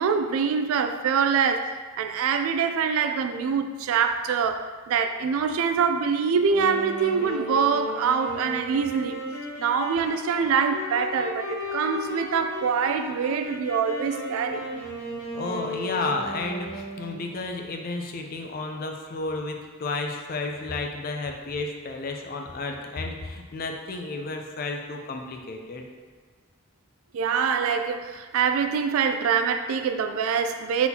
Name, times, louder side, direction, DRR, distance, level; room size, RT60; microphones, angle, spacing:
voice 1, 0.0-9.2 9.6-14.6 27.1-30.9, right 6 dB, 80° right, 0.3 m, -24 dB
Wind instrument woodwind instrument, 6.4-17.4, left 1 dB, 60° left, 0.9 m, -35 dB
voice 2, 15.3-25.9, left 3 dB, 45° left, 0.4 m, -32 dB
4.0 x 3.9 x 2.8 m
head